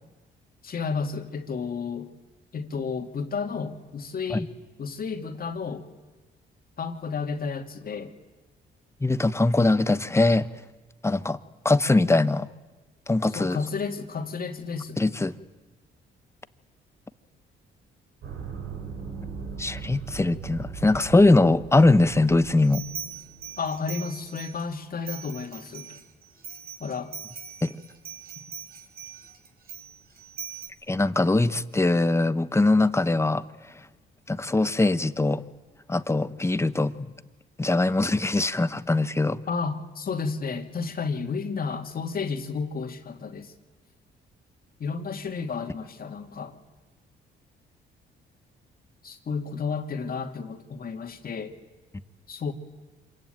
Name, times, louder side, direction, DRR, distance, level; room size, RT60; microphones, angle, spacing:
voice 1, 0.6-2.1 2.5-4.5 4.8-5.9 6.8-8.1 13.3-15.0 23.6-26.0 26.8-27.1 39.5-43.5 44.8-46.6 49.0-51.5 52.3-52.5, left 5 dB, 50° left, 6 dB, 2.4 m, -32 dB
voice 2, 9.0-10.5 11.0-11.4 11.6-12.5 13.1-13.6 15.0-15.3 19.6-22.8 27.6-27.7 30.9-33.4 34.3-35.4 35.9-37.1 37.6-39.4, left 2 dB, 15° left, 14 dB, 1.0 m, -22 dB
sound 1, 18.2-23.7, right 6 dB, 80° right, 4.5 m, -39 dB
sound 2, 22.6-24.6 25.0-30.7, right 6 dB, 50° right, 4.4 m, -41 dB
27.0 x 22.5 x 9.1 m, 1.2 s
cardioid pair, 90°, 20 cm